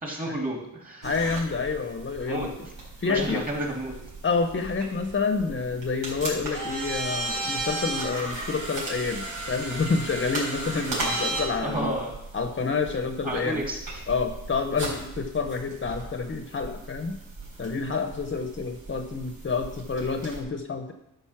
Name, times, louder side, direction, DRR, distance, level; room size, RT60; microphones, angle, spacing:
voice 1, 0.0-1.1 2.2-2.5 3.0-3.9 11.6-12.1 13.2-13.8, right 1 dB, 25° right, -1 dB, 2.9 m, -31 dB
voice 2, 1.0-2.4 3.0-3.4 4.2-11.9 12.3-13.6 14.1-17.2 17.6-20.9, left 4 dB, 35° left, 6 dB, 0.8 m, -28 dB
sound 1, 1.0-20.4, right 2 dB, 75° right, 4.2 m, -36 dB
12.0 x 5.3 x 5.9 m, 0.90 s
wide cardioid pair, 120°, 34 cm